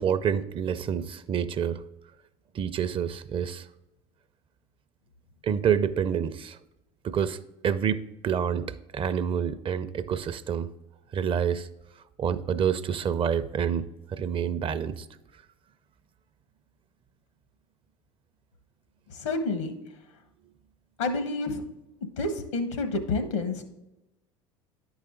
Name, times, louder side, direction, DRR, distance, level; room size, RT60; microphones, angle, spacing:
voice 1, 0.0-1.8 2.5-3.7 5.4-6.6 7.0-10.7 11.1-11.7 12.2-15.1, right 8 dB, 35° right, 13 dB, 0.5 m, -28 dB
voice 2, 19.1-19.8 21.0-21.6 22.2-23.6, left 3 dB, 80° left, 9 dB, 1.1 m, -29 dB
10.5 x 4.8 x 3.7 m, 0.95 s
hypercardioid pair, 75°, 15 cm